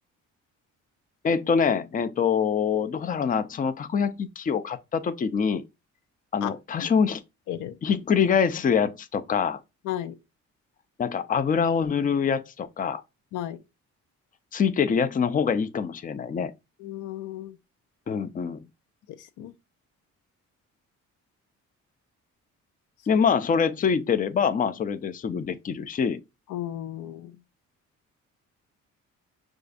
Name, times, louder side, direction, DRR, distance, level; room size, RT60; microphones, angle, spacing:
voice 1, 1.2-5.6 6.3-7.2 7.8-9.6 11.0-13.0 14.5-16.5 18.1-18.6 23.1-26.2, left 6 dB, 30° left, 0.4 m, -25 dB
voice 2, 9.8-10.2 13.3-13.6 16.8-17.6 19.2-19.5 26.5-27.4, left 12 dB, 90° left, 0.5 m, -34 dB
6.3 x 2.4 x 2.5 m
cardioid pair, 90°, 30 cm